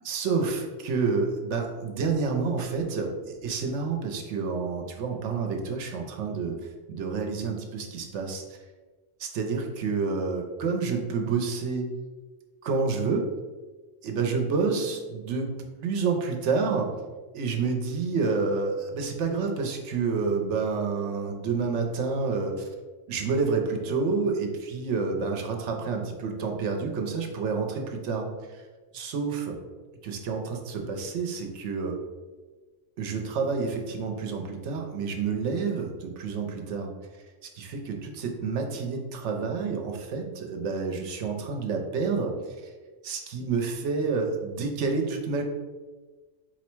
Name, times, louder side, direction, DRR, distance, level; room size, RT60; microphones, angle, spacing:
voice 1, 0.0-8.6 9.2-11.9 12.6-13.3 14.0-15.5 15.8-16.9 17.3-22.7 23.1-28.6 28.9-29.6 30.0-32.0 33.0-36.9 37.5-42.7 43.0-45.4, right 4 dB, 70° right, 3 dB, 0.9 m, -29 dB
4.4 x 2.1 x 4.4 m, 1.3 s
omnidirectional pair, 1.3 m